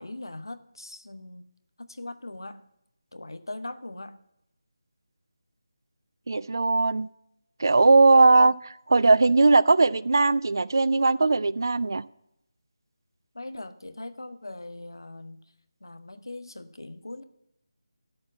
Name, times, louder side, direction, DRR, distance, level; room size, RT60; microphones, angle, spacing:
voice 1, 0.0-1.5 1.8-2.6 3.1-4.2 13.3-15.4 15.8-17.2, left 2 dB, 70° left, 11 dB, 0.8 m, -40 dB
voice 2, 6.3-7.1 7.6-8.5 8.9-12.0, right 3 dB, 55° right, 18 dB, 0.3 m, -19 dB
12.5 x 4.5 x 7.2 m, 0.81 s
figure-of-eight pair, 160°, 2 cm